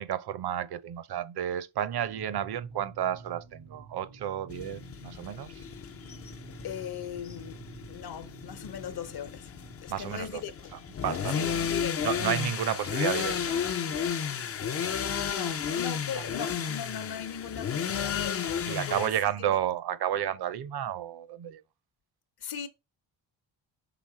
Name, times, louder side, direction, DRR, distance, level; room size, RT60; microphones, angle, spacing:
voice 1, 0.0-5.6 9.9-10.4 11.0-11.5 12.0-13.6 16.2-16.3 18.7-21.6, right 10 dB, 55° right, 0.8 m, -31 dB
sound 1, 1.9-9.8, right 3 dB, 80° right, 1.8 m, -50 dB
sound 2, 4.5-19.1, left 7 dB, 30° left, 0.5 m, -33 dB
voice 2, 6.5-9.5 9.8-10.7 11.3-12.2 15.0-19.6 22.4-22.7, left 8 dB, 55° left, 0.9 m, -39 dB
6.0 x 3.5 x 4.8 m
cardioid pair, 120°, 47 cm